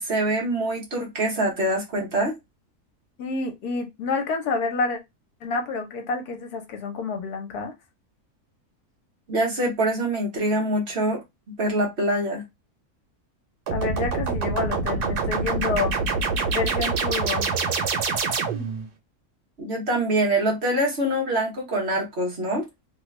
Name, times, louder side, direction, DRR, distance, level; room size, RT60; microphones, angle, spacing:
voice 1, 0.0-2.3 9.3-11.2 11.6-12.4 19.6-22.6, right 1 dB, 45° right, 1.2 m, -24 dB
voice 2, 3.2-5.0 5.4-7.7 13.7-15.9 16.5-17.5, left 4 dB, 80° left, 1.3 m, -28 dB
sound 1, 13.7-18.9, right 4 dB, 85° right, 1.3 m, -25 dB
3.1 x 2.3 x 3.1 m
omnidirectional pair, 1.6 m